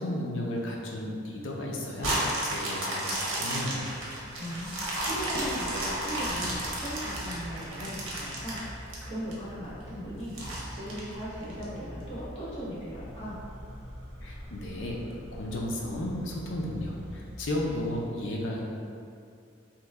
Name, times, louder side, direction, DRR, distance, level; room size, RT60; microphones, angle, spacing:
voice 1, 0.0-2.2 2.4-3.8 14.2-15.0 15.3-18.6, left 1 dB, 65° left, -2 dB, 0.5 m, -33 dB
sound 1, 2.0-9.3 9.8-9.9 10.4-11.6 12.2-12.3, right 1 dB, 85° right, 0.7 m, -33 dB
Applause / Crowd, 2.8-9.6, equal, 15° right, 0.5 m, -46 dB
sound 2, 3.3-18.1, equal, 5° left, 0.9 m, -45 dB
voice 2, 4.4-13.4, equal, 30° left, -11 dB, 1.0 m, -38 dB
3.0 x 2.2 x 3.4 m, 2.4 s
head